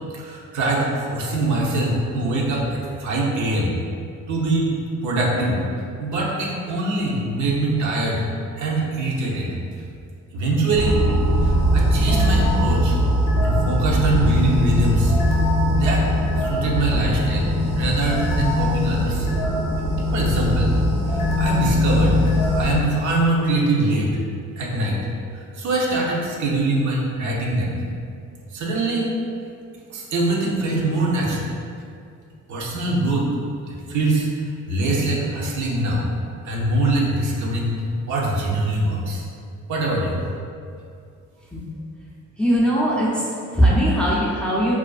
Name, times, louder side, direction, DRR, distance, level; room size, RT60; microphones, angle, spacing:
voice 1, 0.1-3.8 4.3-4.7 5.0-5.6 6.0-8.2 8.6-9.5 10.3-11.0 11.4-13.0 13.4-15.1 15.8-16.0 16.4-17.5 17.7-19.3 20.1-20.8 21.1-22.2 22.5-24.1 24.6-25.0 25.5-27.8 28.5-29.1 29.9-31.5 32.5-33.3 33.7-34.3 34.7-36.1 36.4-37.8 38.1-39.2 39.7-40.2, right 2 dB, 70° right, -3 dB, 0.6 m, -23 dB
sound 1, 10.7-22.8, equal, 90° left, 0.6 m, -20 dB
voice 2, 42.4-44.8, equal, 5° left, -6 dB, 0.4 m, -20 dB
2.4 x 2.3 x 2.3 m, 2.4 s
cardioid pair, 90°, 30 cm